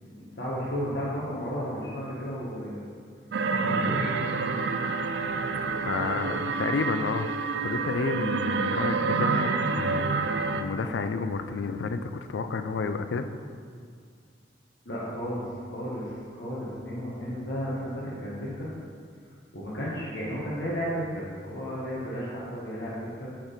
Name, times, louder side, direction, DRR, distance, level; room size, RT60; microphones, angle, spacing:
voice 1, 0.0-2.8 3.5-4.1 14.8-15.5 15.7-18.7 19.5-23.3, equal, 70° left, -8 dB, 1.2 m, -33 dB
sound 1, 3.3-10.6, right 4 dB, 65° right, 0.4 m, -28 dB
voice 2, 5.8-13.3, left 4 dB, 85° left, 9 dB, 0.4 m, -31 dB
5.8 x 4.5 x 5.0 m, 2.2 s
head